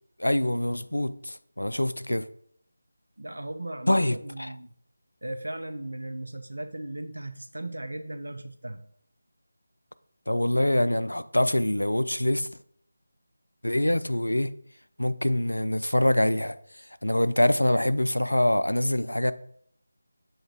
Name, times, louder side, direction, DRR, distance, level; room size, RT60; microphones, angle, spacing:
voice 1, 0.2-2.3 3.9-4.5 10.3-12.5 13.6-14.5 15.0-16.6 17.0-19.3, left 1 dB, 80° left, 0.5 m, -24 dB
voice 2, 3.2-4.7 5.2-8.8, right 1 dB, 70° right, 0.8 m, -37 dB
7.9 x 3.8 x 4.6 m
figure-of-eight pair, 160°, 0 cm